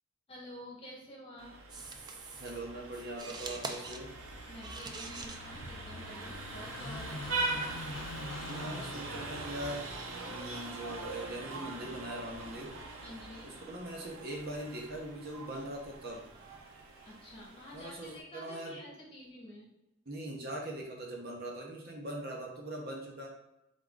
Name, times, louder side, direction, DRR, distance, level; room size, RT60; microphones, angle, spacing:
voice 1, 0.3-1.9 4.5-7.4 13.0-13.5 17.0-19.7, equal, 25° left, -4 dB, 1.3 m, -49 dB
Vehicle horn car horn honking, 1.4-18.2, right 3 dB, 80° right, 0.7 m, -42 dB
sound 1, 1.7-18.2, right 3 dB, 20° right, 0.3 m, -50 dB
voice 2, 2.4-4.1 8.4-9.9 10.2-12.7 13.7-16.3 17.7-18.8 20.1-23.3, right 1 dB, 50° right, -1 dB, 0.9 m, -41 dB
Car passing by / Idling, 3.1-13.8, left 3 dB, 70° left, 0.4 m, -48 dB
3.7 x 3.7 x 3.7 m, 0.89 s
head